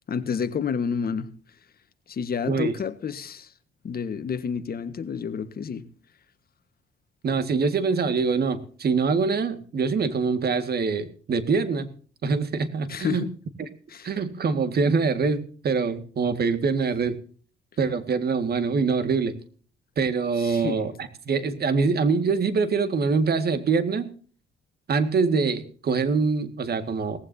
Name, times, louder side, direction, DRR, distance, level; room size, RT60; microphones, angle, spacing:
voice 1, 0.1-1.3 2.1-3.5 3.8-5.8 12.9-13.3 13.9-14.1 20.4-20.9, left 6 dB, 50° left, 1.5 m, -29 dB
voice 2, 7.2-11.9 12.2-13.3 13.6-13.7 14.0-17.2 17.8-19.3 20.0-20.9 21.3-24.1 24.9-27.2, right 5 dB, 50° right, 2.0 m, -24 dB
18.5 x 15.5 x 2.8 m
cardioid pair, 90°, 20 cm